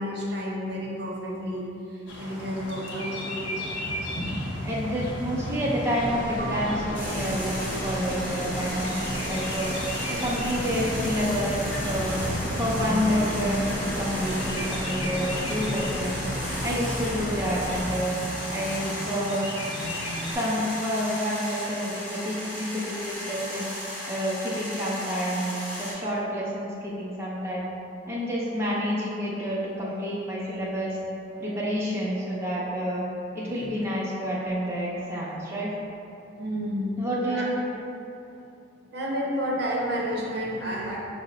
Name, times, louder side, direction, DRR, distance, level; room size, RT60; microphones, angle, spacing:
voice 1, 0.0-3.6 4.1-4.3 6.3-6.4 33.5-33.7 36.4-37.5 38.9-41.0, equal, 55° right, -3 dB, 0.7 m, -31 dB
sound 1, 2.1-20.3, equal, 75° left, 0.8 m, -34 dB
voice 2, 4.6-9.7 10.1-12.2 12.6-16.3 16.6-18.2 18.5-19.5 20.3-23.7 24.1-27.7 28.1-31.0 31.4-33.0 33.3-35.7 37.0-37.6, equal, 15° right, -8 dB, 0.4 m, -29 dB
sound 2, 6.0-17.8, left 1 dB, 40° left, 0.5 m, -34 dB
sound 3, 6.9-25.9, equal, 20° left, 1.1 m, -36 dB
5.4 x 2.0 x 3.7 m, 2.8 s
head